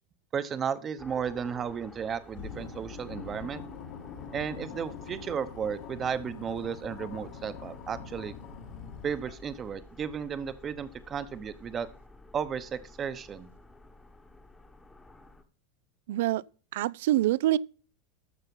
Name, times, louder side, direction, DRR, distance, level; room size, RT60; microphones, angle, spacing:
voice 1, 0.3-3.6 4.3-8.3 9.0-11.9 12.3-13.5, right 7 dB, 25° right, 0.9 m, -34 dB
sound 1, 1.0-15.4, left 2 dB, 10° left, 1.1 m, -52 dB
sound 2, 2.3-9.6, left 6 dB, 60° left, 1.8 m, -44 dB
voice 2, 16.1-16.4 16.7-17.6, right 14 dB, 75° right, 0.4 m, -25 dB
13.0 x 5.6 x 5.4 m
supercardioid pair, 140°, 0 cm